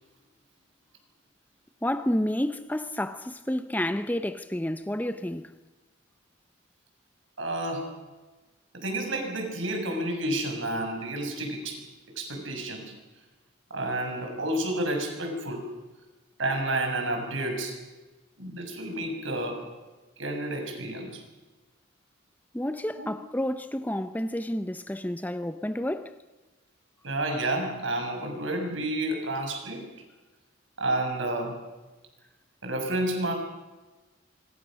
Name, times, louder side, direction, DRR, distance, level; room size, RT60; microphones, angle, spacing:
voice 1, 1.8-5.5 22.5-26.2, left 1 dB, 10° left, 0.7 m, -30 dB
voice 2, 7.4-7.9 8.7-11.9 12.2-12.9 13.7-15.7 16.4-17.8 18.4-19.7 20.2-21.2 23.0-23.1 27.0-29.9 30.8-31.6 32.6-33.3, right 1 dB, 70° right, 6.6 m, -30 dB
25.5 x 25.5 x 6.4 m
head